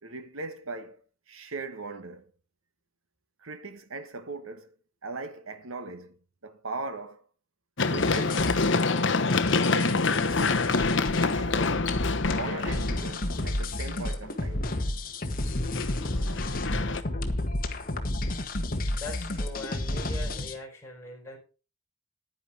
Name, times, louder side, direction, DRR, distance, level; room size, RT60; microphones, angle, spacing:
voice 1, 0.0-1.0 1.3-2.3 3.4-4.7 5.0-7.2 7.8-8.6 9.5-10.7 11.0-11.8 12.3-14.7 16.1-16.4, right 3 dB, 85° right, 1.5 m, -39 dB
Run, 7.8-13.6 15.5-17.0, left 3 dB, 60° left, 1.0 m, -26 dB
sound 1, 8.0-20.6, left 1 dB, 40° left, 1.7 m, -31 dB
voice 2, 18.9-21.4, left 2 dB, 10° left, 5.1 m, -41 dB
10.5 x 9.9 x 4.8 m
head